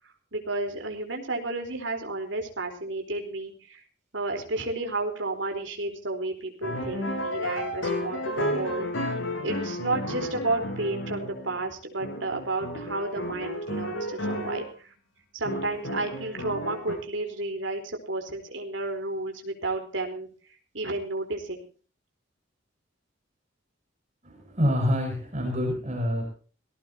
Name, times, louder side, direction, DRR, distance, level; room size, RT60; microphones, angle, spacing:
voice 1, 0.3-3.8 4.1-14.9 15.3-20.3 20.7-21.6, right 2 dB, 75° right, 4 dB, 4.3 m, -32 dB
sound 1, 6.6-11.7 12.0-14.7 15.4-16.9, left 1 dB, 85° left, 6.7 m, -32 dB
voice 2, 24.2-26.3, equal, 35° right, 2 dB, 6.7 m, -27 dB
19.5 x 17.5 x 3.0 m, 0.39 s
head